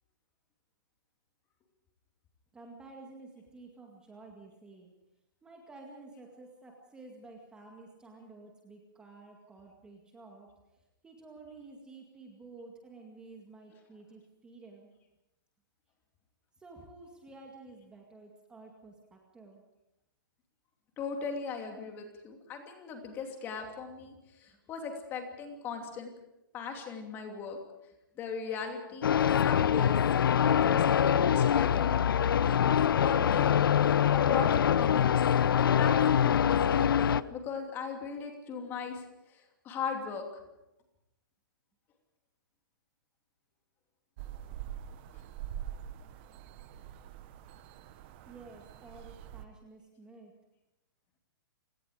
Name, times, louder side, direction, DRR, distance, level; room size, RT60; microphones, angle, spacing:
voice 1, 2.5-4.9 5.4-14.9 16.6-19.6 24.5-24.6 48.3-50.3, right 3 dB, 10° right, 1 dB, 2.1 m, -52 dB
voice 2, 21.0-26.1 26.5-27.6 28.2-30.0 30.3-32.0 32.4-32.7 33.0-35.1 35.6-40.2, left 5 dB, 20° left, 3 dB, 2.8 m, -39 dB
sound 1, 29.0-37.2, left 8 dB, 80° left, 0.7 m, -24 dB
sound 2, 44.2-49.4, right 10 dB, 30° right, 1.1 m, -44 dB
29.5 x 18.0 x 5.0 m, 0.91 s
hypercardioid pair, 165°, 11 cm